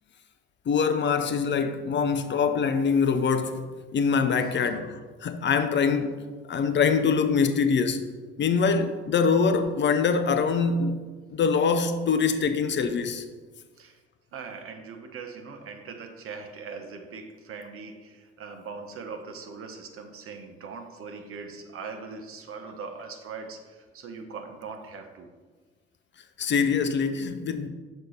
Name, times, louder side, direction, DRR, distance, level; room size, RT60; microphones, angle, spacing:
voice 1, 0.7-6.2 6.5-8.1 8.4-11.0 11.3-13.2 26.4-27.7, left 5 dB, 35° left, 0.6 m, -24 dB
voice 2, 14.3-25.3, right 5 dB, 45° right, 1.0 m, -41 dB
6.5 x 4.3 x 6.2 m
figure-of-eight pair, 45°, 31 cm